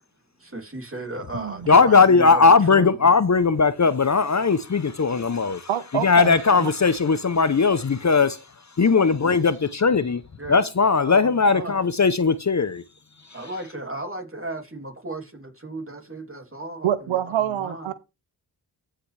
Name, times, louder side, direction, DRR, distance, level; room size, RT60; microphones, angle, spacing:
voice 1, 0.4-3.1 10.4-10.6 11.0-11.7 13.3-17.9, right 2 dB, 30° right, 3.1 m, -35 dB
voice 2, 1.7-8.4 8.8-10.2 10.5-12.8, left 4 dB, 35° left, 0.8 m, -18 dB
voice 3, 5.7-6.3 6.6-6.7 16.8-17.9, right 11 dB, 80° right, 0.7 m, -25 dB
14.5 x 5.9 x 3.4 m
cardioid pair, 40°, 46 cm